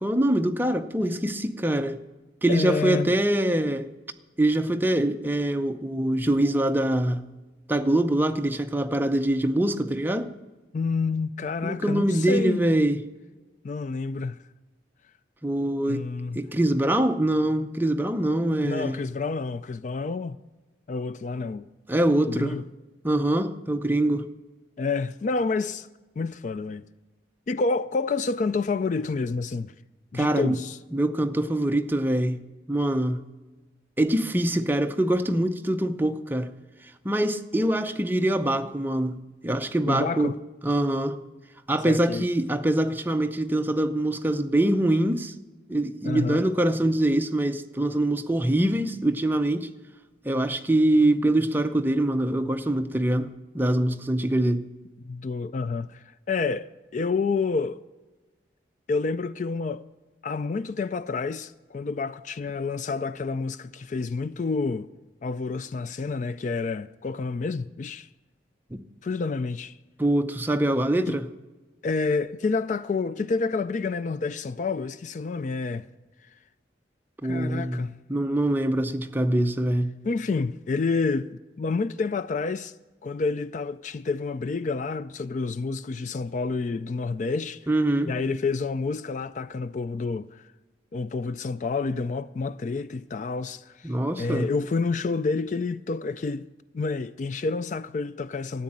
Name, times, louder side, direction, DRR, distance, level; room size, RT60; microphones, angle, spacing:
voice 1, 0.0-2.0 2.4-3.9 4.4-7.2 7.7-10.3 11.6-13.0 15.4-16.1 16.3-19.0 21.9-22.6 23.0-24.3 30.1-30.6 30.9-32.4 32.7-33.3 34.0-36.5 37.0-40.4 40.6-41.2 41.7-45.3 45.7-49.7 50.2-54.6 68.7-68.8 70.0-71.3 77.2-79.9 87.7-88.2 93.8-94.5, right 1 dB, 10° right, 0.6 m, -24 dB
voice 2, 2.5-3.1 10.7-12.6 13.6-14.4 15.9-16.4 18.6-20.4 20.9-21.7 22.3-22.6 24.8-25.9 26.2-26.8 27.5-29.7 30.1-30.8 39.9-40.4 41.8-42.3 46.0-46.4 55.0-57.8 58.9-59.8 60.2-64.9 65.2-68.1 69.0-69.7 71.1-71.2 71.8-75.9 77.2-77.9 80.0-81.3 81.6-82.7 83.0-87.7 88.1-90.4 90.9-93.9 94.2-96.5 96.7-98.6, left 4 dB, 40° left, 0.3 m, -29 dB
13.0 x 8.6 x 8.6 m
head